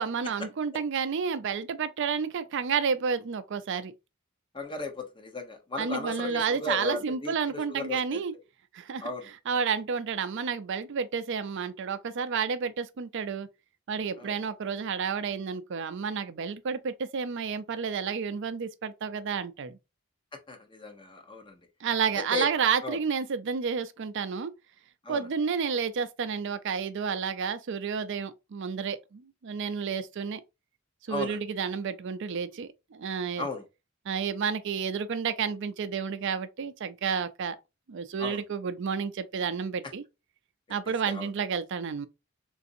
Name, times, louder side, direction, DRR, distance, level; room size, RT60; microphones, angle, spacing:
voice 1, 0.0-3.9 5.8-8.3 8.7-9.1 9.5-13.5 13.9-19.8 21.8-24.5 25.1-30.4 31.1-33.5 34.1-37.6 37.9-40.0 40.7-42.1, right 6 dB, 60° right, 0.4 m, -30 dB
voice 2, 4.5-8.2 9.0-9.3 14.2-14.4 20.5-21.6 22.3-22.5 22.8-23.0 25.0-25.2 31.1-31.4 33.4-33.6 38.2-38.4 41.0-41.3, left 2 dB, 25° left, 0.8 m, -36 dB
3.9 x 2.5 x 2.6 m
head